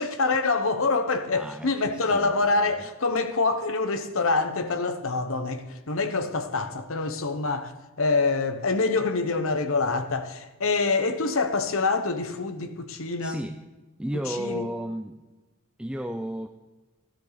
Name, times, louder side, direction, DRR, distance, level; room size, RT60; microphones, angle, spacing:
voice 1, 0.0-7.7 8.0-13.4 14.3-14.7, left 3 dB, 75° left, 1.0 m, -26 dB
voice 2, 1.3-2.5 2.8-2.9 13.2-13.6 14.0-15.2 15.8-16.5, equal, 5° right, 0.4 m, -33 dB
13.0 x 13.0 x 4.0 m
head